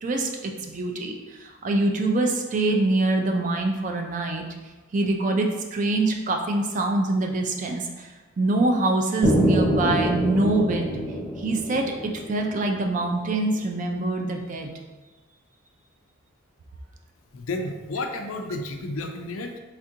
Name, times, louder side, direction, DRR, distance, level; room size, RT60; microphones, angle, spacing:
voice 1, 0.0-4.4 4.9-8.1 8.4-11.0 11.4-14.7, right 2 dB, 35° right, 3 dB, 0.3 m, -24 dB
sound 1, 9.2-13.1, equal, 5° left, 0.7 m, -25 dB
voice 2, 17.3-19.6, left 2 dB, 75° left, 4 dB, 0.4 m, -31 dB
4.2 x 2.5 x 2.7 m, 1.2 s
head